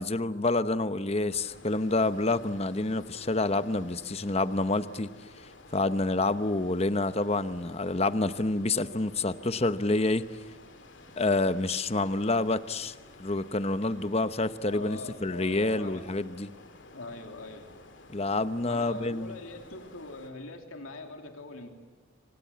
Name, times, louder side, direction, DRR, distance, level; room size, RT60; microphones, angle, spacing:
voice 1, 0.0-5.1 5.7-10.3 11.2-16.5 18.1-19.3, left 2 dB, 30° left, 0.9 m, -28 dB
sound 1, 1.3-20.3, left 2 dB, 60° left, 2.8 m, -52 dB
voice 2, 14.7-16.0 16.9-17.7 18.6-21.7, left 2 dB, 90° left, 3.0 m, -42 dB
27.0 x 25.0 x 8.6 m
head